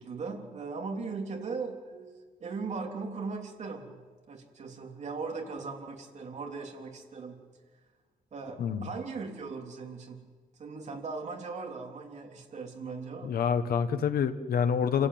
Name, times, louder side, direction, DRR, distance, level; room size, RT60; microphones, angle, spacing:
voice 1, 0.0-7.5 8.3-10.3 10.6-13.3, right 4 dB, 45° right, 2 dB, 3.2 m, -39 dB
voice 2, 8.6-8.9 13.2-15.1, left 7 dB, 70° left, 9 dB, 1.4 m, -27 dB
27.0 x 16.0 x 9.4 m, 1.5 s
wide cardioid pair, 170°, 16 cm